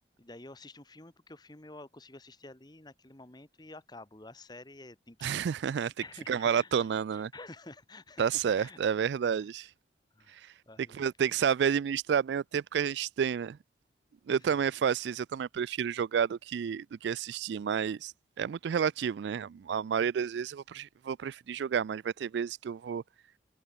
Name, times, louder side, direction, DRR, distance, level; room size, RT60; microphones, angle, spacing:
voice 1, 0.2-5.4 6.0-6.7 7.1-8.8 9.2-9.5 10.1-11.1 14.3-14.6, left 2 dB, 20° left, 1.3 m, -50 dB
voice 2, 5.2-5.9 6.3-7.3 8.2-9.7 10.3-10.5 10.9-13.6 14.3-23.0, right 7 dB, 70° right, 0.3 m, -30 dB
head